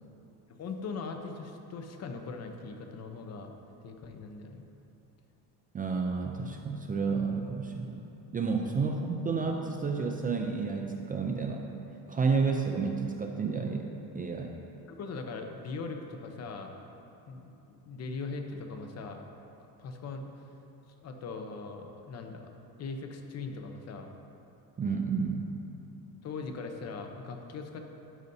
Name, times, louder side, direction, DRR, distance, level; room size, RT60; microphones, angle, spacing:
voice 1, 0.5-3.5 3.8-4.7 8.8-9.0 14.9-16.7 17.3-19.2 19.6-20.3 21.0-22.5 22.8-24.1 26.2-27.8, left 4 dB, 40° left, 4 dB, 0.8 m, -40 dB
voice 2, 5.7-8.0 8.3-11.7 12.1-13.9 14.1-14.5 24.8-25.5, right 4 dB, 25° right, 3 dB, 0.4 m, -30 dB
12.0 x 9.0 x 2.7 m, 2.9 s
cardioid pair, 140°, 38 cm